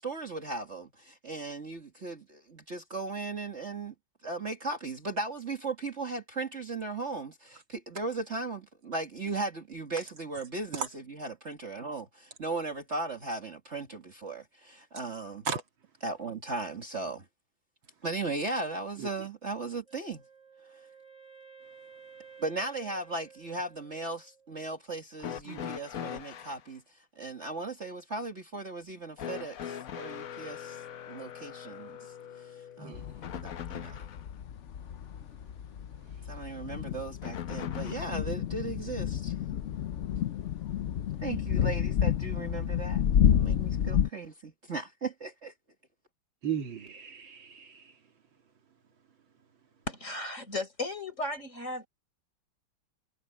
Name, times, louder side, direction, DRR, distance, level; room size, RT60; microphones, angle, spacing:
voice 1, 0.0-3.9 4.2-15.4 16.0-17.3 18.0-20.2 22.4-34.0 36.3-39.4 41.2-45.5, right 3 dB, 35° right, 2.1 m, -37 dB
Wind instrument woodwind instrument, 19.9-24.7, right 6 dB, 15° left, 2.4 m, -54 dB
sound 1, 25.2-26.6 29.2-34.3 37.2-38.3 39.5-39.6 40.7-40.8, left 9 dB, 55° left, 1.1 m, -41 dB
sound 2, 32.9-44.1, left 9 dB, 85° left, 0.6 m, -30 dB
voice 2, 46.4-47.9, right 7 dB, 75° right, 2.9 m, -35 dB
voice 3, 49.9-51.9, left 2 dB, 35° left, 5.1 m, -35 dB
omnidirectional pair, 2.2 m